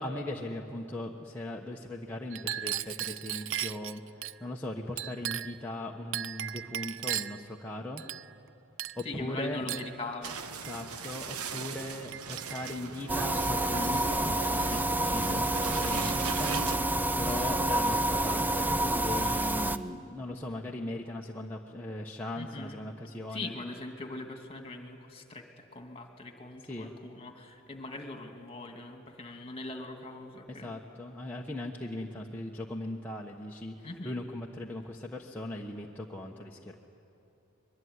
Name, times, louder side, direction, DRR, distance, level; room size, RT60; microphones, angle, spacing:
voice 1, 0.0-8.0 9.0-9.6 10.7-16.6 17.2-23.6 26.6-26.9 30.5-36.7, left 1 dB, 10° left, -2 dB, 1.2 m, -39 dB
Chink clink, 2.3-4.4 5.0-5.6 6.1-7.5 8.0-8.5 8.8-9.1 9.7-10.0 10.6-10.8 11.6-11.7 12.1-12.8 13.5-14.2 14.5-14.8 15.9-16.5 17.3-17.4 17.7-18.6, right 12 dB, 60° right, 0.5 m, -38 dB
voice 2, 9.0-10.3 22.3-22.8 23.3-30.7 33.8-34.1, left 2 dB, 25° left, 4 dB, 2.4 m, -41 dB
sound 1, 10.2-16.8, right 5 dB, 90° right, 1.2 m, -40 dB
sound 2, 13.1-19.8, right 1 dB, 10° right, 0.6 m, -28 dB
24.5 x 22.5 x 9.6 m, 2.7 s
head